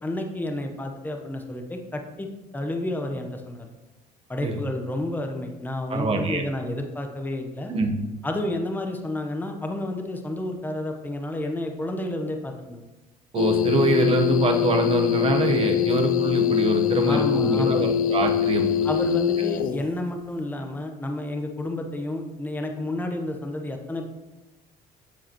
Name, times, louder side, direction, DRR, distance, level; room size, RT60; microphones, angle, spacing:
voice 1, 0.0-2.3 2.5-3.7 4.3-7.7 8.2-12.8 17.1-18.0 18.8-24.1, left 1 dB, 10° left, 4 dB, 0.9 m, -30 dB
voice 2, 5.9-6.4 7.7-7.9 13.3-18.9, right 3 dB, 35° right, 4 dB, 1.1 m, -24 dB
sound 1, 13.4-19.9, left 12 dB, 55° left, 0.5 m, -23 dB
14.5 x 4.8 x 3.0 m, 1.1 s
cardioid pair, 110°, 17 cm